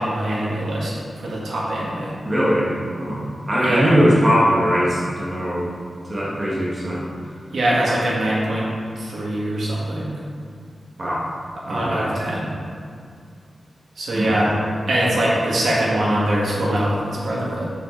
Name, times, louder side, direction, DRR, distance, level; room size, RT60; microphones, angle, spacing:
voice 1, 0.0-2.1 3.6-3.9 7.5-8.7 9.0-10.1 11.7-12.5 14.0-14.6 14.9-17.7, right 1 dB, 75° right, -6 dB, 1.9 m, -22 dB
voice 2, 2.2-5.7 6.1-7.1 11.0-11.3 11.7-12.1 14.1-14.4, equal, 25° right, -6 dB, 1.3 m, -20 dB
6.9 x 6.4 x 3.8 m, 2.2 s
wide cardioid pair, 175°, 0 cm